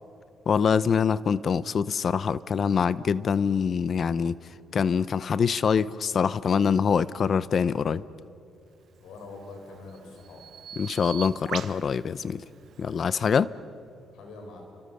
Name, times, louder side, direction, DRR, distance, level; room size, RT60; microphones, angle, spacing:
voice 1, 0.5-4.3 4.7-8.0 10.8-12.4 12.8-13.5, left 6 dB, 50° left, 0.7 m, -24 dB
voice 2, 9.0-10.5 14.1-14.7, left 3 dB, 85° left, 6.1 m, -44 dB
Bird vocalization bird call bird song, 9.0-13.3, right 9 dB, 65° right, 0.9 m, -42 dB
30.0 x 25.5 x 6.8 m
cardioid pair, 90°, 0 cm